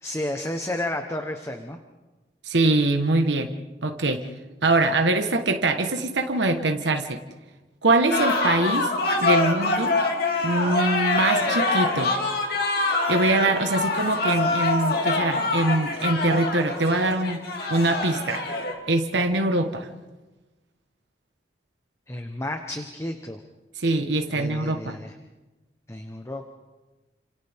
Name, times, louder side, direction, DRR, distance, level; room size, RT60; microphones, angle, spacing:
voice 1, 0.0-1.8 22.1-23.4 24.3-25.1 25.9-26.5, left 1 dB, 15° left, 5 dB, 1.1 m, -32 dB
voice 2, 2.4-3.5 3.8-4.3 4.6-7.2 7.8-8.9 9.2-10.0 10.4-12.1 13.1-17.4 17.7-18.4 18.9-19.9 23.8-25.0, right 2 dB, 75° right, 5 dB, 1.4 m, -23 dB
sound 1, 8.1-18.7, left 2 dB, 60° left, 2.8 m, -25 dB
29.5 x 27.0 x 3.6 m, 1.2 s
head